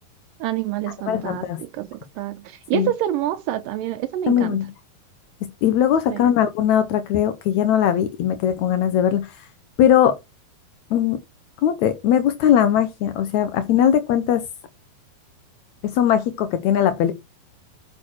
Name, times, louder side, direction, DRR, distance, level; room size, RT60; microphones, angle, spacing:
voice 1, 0.4-4.6 6.1-6.3, right 13 dB, 80° right, 2.0 m, -27 dB
voice 2, 1.1-1.6 2.7-2.9 4.3-4.7 5.6-9.3 9.8-10.2 10.9-11.2 11.6-14.4 15.8-17.1, left 10 dB, 90° left, 1.6 m, -19 dB
8.6 x 7.0 x 4.4 m
omnidirectional pair, 4.5 m